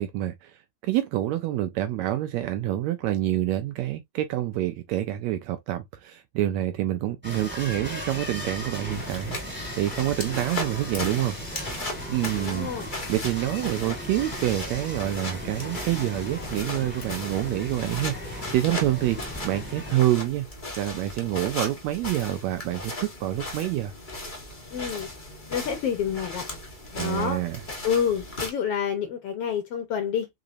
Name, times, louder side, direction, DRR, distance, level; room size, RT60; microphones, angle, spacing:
voice 1, 0.0-12.7 13.1-20.5 20.8-23.9 26.9-27.6, right 14 dB, 80° right, 1.7 m, -27 dB
sound 1, 7.2-19.9, equal, 5° right, 1.0 m, -37 dB
sound 2, 8.9-28.5, left 1 dB, 45° left, 0.6 m, -37 dB
voice 2, 12.4-12.9 24.7-25.1 25.5-26.5 26.9-27.4 27.8-30.3, left 8 dB, 65° left, 1.6 m, -28 dB
5.0 x 3.8 x 2.6 m
omnidirectional pair, 3.6 m